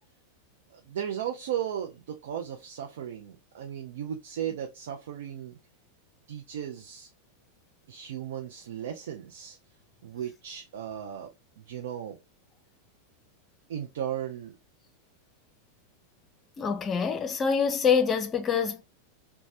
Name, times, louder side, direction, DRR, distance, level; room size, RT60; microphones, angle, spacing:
voice 1, 0.7-5.6 6.3-7.1 7.9-9.6 10.0-11.3 11.7-12.2 13.7-14.6, right 9 dB, 60° right, 0.4 m, -36 dB
voice 2, 16.6-18.8, left 6 dB, 25° left, 0.5 m, -25 dB
3.1 x 2.2 x 2.6 m
figure-of-eight pair, 90°, 0 cm